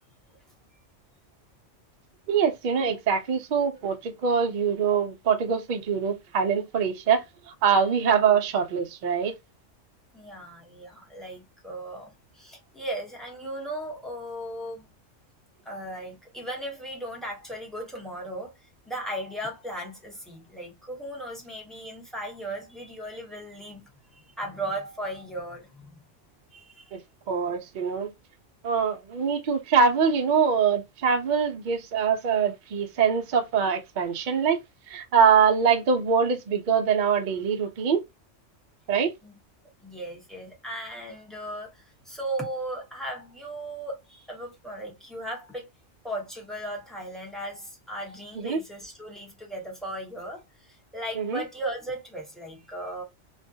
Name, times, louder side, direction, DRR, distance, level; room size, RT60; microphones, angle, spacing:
voice 1, 2.3-7.2 7.6-9.3 26.9-27.0 27.3-28.1 28.6-34.6 34.9-38.0 38.9-39.1 48.4-48.6 51.2-51.4, right 6 dB, 55° right, 0.5 m, -23 dB
voice 2, 10.1-14.8 15.6-18.5 18.9-26.0 26.5-27.0 39.2-39.4 39.8-45.6 46.0-53.0, right 1 dB, ahead, 0.7 m, -37 dB
2.4 x 2.2 x 2.6 m
omnidirectional pair, 1.3 m